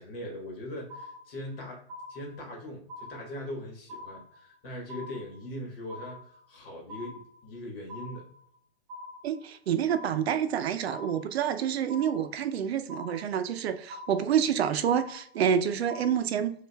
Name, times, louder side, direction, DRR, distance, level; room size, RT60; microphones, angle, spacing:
voice 1, 0.0-1.8 2.1-8.3, left 1 dB, 65° left, 1.3 m, -40 dB
sound 1, 0.9-1.6 1.9-2.6 2.9-3.6 3.9-4.6 4.9-5.6 5.9-6.6 6.9-7.6 7.9-8.6 8.9-9.6 9.9-10.6 10.9-11.6 11.9-12.6 12.9-13.6 13.9-14.6 14.9-15.6 15.9-16.2, left 2 dB, 30° right, 0.8 m, -44 dB
voice 2, 9.2-16.5, right 8 dB, 80° right, 0.5 m, -28 dB
7.0 x 2.4 x 2.2 m
hypercardioid pair, 145°, 31 cm